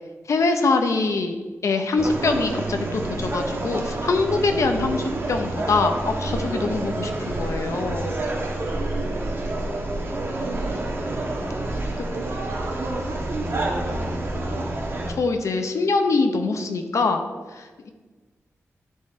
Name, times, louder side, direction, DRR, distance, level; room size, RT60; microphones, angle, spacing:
voice 1, 0.3-1.4 1.6-8.2 12.0-12.1 15.1-17.2 17.5-17.9, left 3 dB, 75° left, 6 dB, 0.8 m, -24 dB
sound 1, 2.0-15.1, right 2 dB, 45° right, 1.3 m, -28 dB
voice 2, 8.8-11.5 11.7-14.7, right 3 dB, 85° right, 0 dB, 1.3 m, -36 dB
10.5 x 3.8 x 4.4 m, 1.3 s
wide cardioid pair, 85°, 5 cm